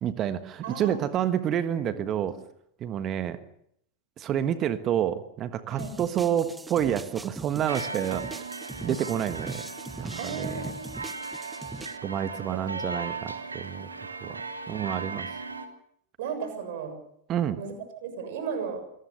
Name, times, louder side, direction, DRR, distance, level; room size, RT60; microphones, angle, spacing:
voice 1, 0.0-2.4 2.8-3.4 4.2-8.5 8.8-9.6 10.0-10.7 11.4-11.5 12.0-13.9 14.2-14.4 14.7-15.3 17.3-17.6, right 10 dB, 30° right, 12 dB, 1.4 m, -29 dB
voice 2, 0.6-1.0 1.8-2.3 5.7-6.0 10.2-10.9 12.3-13.0 16.2-16.9 17.6-17.8 18.0-18.8, right 6 dB, 50° right, 7 dB, 7.1 m, -36 dB
sound 1, 5.8-12.0, right 2 dB, 10° right, 1.1 m, -41 dB
sound 2, 7.7-15.6, right 4 dB, 80° right, 2.3 m, -37 dB
26.5 x 19.5 x 6.6 m, 0.71 s
figure-of-eight pair, 90°, 0 cm